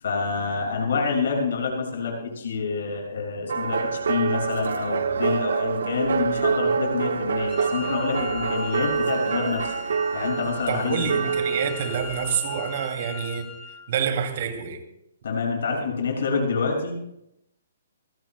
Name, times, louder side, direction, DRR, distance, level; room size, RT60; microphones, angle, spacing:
voice 1, 0.0-9.7 10.1-11.2 15.2-16.9, left 4 dB, 65° left, 6.2 m, -27 dB
sound 1, 3.5-12.7, right 5 dB, 75° right, 1.1 m, -26 dB
Wind instrument woodwind instrument, 7.5-13.8, left 5 dB, 20° left, 4.3 m, -39 dB
voice 2, 10.7-13.5 13.9-14.8, right 7 dB, 50° right, 2.5 m, -27 dB
26.5 x 15.0 x 2.2 m
hypercardioid pair, 145°, 0 cm